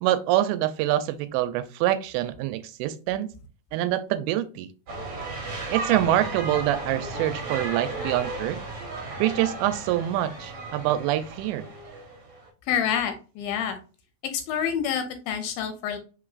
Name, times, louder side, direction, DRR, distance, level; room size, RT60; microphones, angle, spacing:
voice 1, 0.0-3.3 3.7-4.7 5.7-8.6 9.2-11.7, right 13 dB, 90° right, 2.4 m, -25 dB
sound 1, 4.9-12.5, right 2 dB, 55° right, 1.6 m, -35 dB
voice 2, 12.7-13.8 14.3-16.0, left 8 dB, 85° left, 2.4 m, -27 dB
5.0 x 3.8 x 2.4 m
omnidirectional pair, 4.3 m